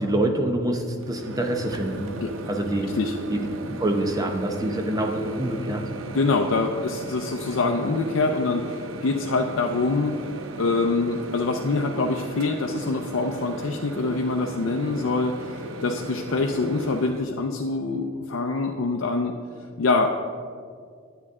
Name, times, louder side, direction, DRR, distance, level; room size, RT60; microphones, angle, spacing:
voice 1, 0.0-2.1 2.5-2.9 3.3-5.9, right 1 dB, 20° right, 4 dB, 0.7 m, -26 dB
Microwave oven, 1.0-17.3, right 2 dB, 70° right, 0.6 m, -37 dB
voice 2, 6.1-10.2 10.6-19.3 19.8-20.1, left 3 dB, 75° left, 2 dB, 0.5 m, -25 dB
9.7 x 8.0 x 3.6 m, 2.2 s
head